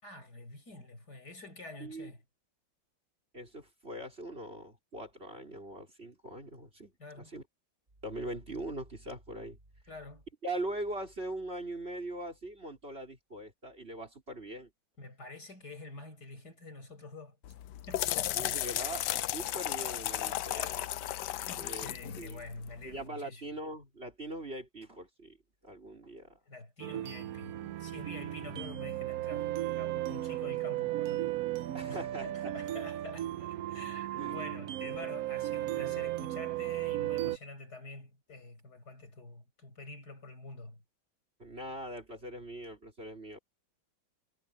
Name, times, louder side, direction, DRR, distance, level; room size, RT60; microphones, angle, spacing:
voice 1, 0.0-2.2 7.0-7.3 9.9-10.2 15.0-17.4 17.9-18.6 19.5-23.4 26.5-40.8, left 3 dB, 50° left, 6.4 m, -48 dB
voice 2, 1.8-2.1 3.3-7.4 8.0-9.6 10.4-14.7 18.3-20.8 21.6-22.4 22.8-25.4 25.6-26.4 31.7-32.5 34.1-34.5 34.8-34.9 41.4-43.4, right 1 dB, 30° right, 4.3 m, -41 dB
sound 1, 17.4-23.0, left 13 dB, 70° left, 1.1 m, -35 dB
sound 2, 26.8-37.4, right 14 dB, 80° right, 0.8 m, -35 dB
omnidirectional pair, 2.2 m